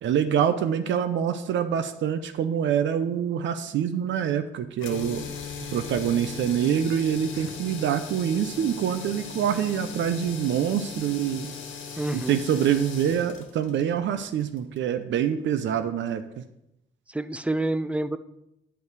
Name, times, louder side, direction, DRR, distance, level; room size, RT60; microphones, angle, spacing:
voice 1, 0.0-5.2 5.7-11.5 12.1-16.4, right 9 dB, 70° right, 10 dB, 0.6 m, -25 dB
sound 1, 4.8-14.9, left 6 dB, 75° left, 1.4 m, -39 dB
voice 2, 12.0-12.4 17.1-18.2, right 2 dB, 5° right, 13 dB, 0.4 m, -28 dB
8.8 x 5.5 x 4.6 m, 0.84 s
cardioid pair, 90°, 20 cm